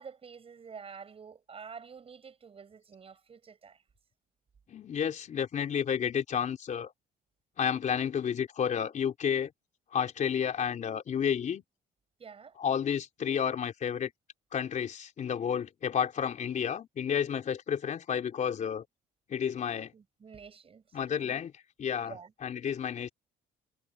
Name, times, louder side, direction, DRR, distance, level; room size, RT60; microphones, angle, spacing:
voice 1, 0.0-3.8 12.2-12.6 19.9-21.4 22.0-22.3, right 6 dB, 35° right, 6.6 m, -48 dB
voice 2, 4.7-6.9 7.6-9.5 9.9-11.6 12.6-14.1 14.5-18.8 19.3-19.9 20.9-21.5 21.8-22.1 22.4-23.1, left 8 dB, 45° left, 3.8 m, -31 dB
cardioid pair, 110°, 17 cm